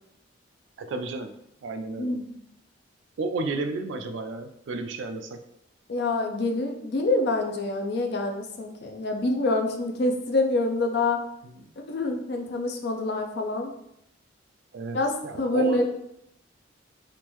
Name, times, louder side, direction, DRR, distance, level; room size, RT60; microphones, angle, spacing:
voice 1, 0.8-1.3 1.6-2.2 3.2-5.4 11.4-11.7 14.7-15.9, right 3 dB, 70° right, 8 dB, 0.4 m, -32 dB
voice 2, 2.0-2.4 5.9-11.2 11.8-13.7 14.9-15.9, left 2 dB, 55° left, 4 dB, 0.4 m, -26 dB
3.6 x 2.5 x 3.0 m, 0.76 s
head